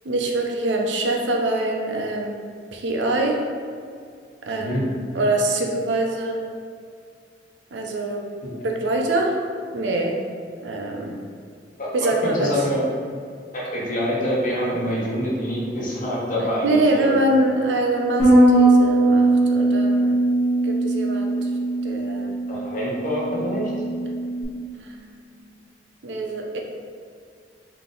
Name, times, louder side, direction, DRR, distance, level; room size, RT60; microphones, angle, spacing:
voice 1, 0.0-2.4 2.7-3.5 4.5-6.4 7.7-8.3 8.6-9.4 9.7-10.2 10.6-11.2 11.9-12.6 16.6-20.2 20.6-21.5 21.8-22.3 24.8-25.1 25.4-25.5 26.0-26.6, right 1 dB, 90° right, 1 dB, 0.6 m, -24 dB
voice 2, 11.8-12.8 13.5-17.1 22.5-23.7, equal, 50° left, -5 dB, 1.0 m, -26 dB
Bass guitar, 18.2-24.4, right 2 dB, ahead, 1.2 m, -20 dB
3.8 x 2.8 x 3.8 m, 2.2 s
head